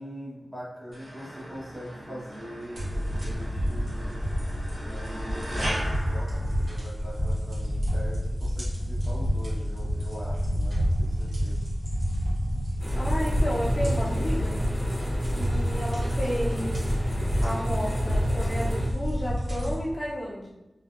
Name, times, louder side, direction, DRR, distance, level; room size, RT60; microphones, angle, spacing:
voice 1, 0.0-4.2 4.8-11.7, equal, 25° right, -6 dB, 1.0 m, -42 dB
sound 1, 0.9-7.2, equal, 50° right, 0.8 m, -38 dB
sound 2, 2.8-19.7, equal, 75° right, 1.1 m, -28 dB
sound 3, 12.8-18.9, equal, ahead, 0.8 m, -32 dB
voice 2, 12.9-14.6 15.4-17.0 17.4-20.5, equal, 45° left, -5 dB, 0.5 m, -32 dB
2.5 x 2.2 x 2.4 m, 0.98 s
cardioid pair, 40°, 0 cm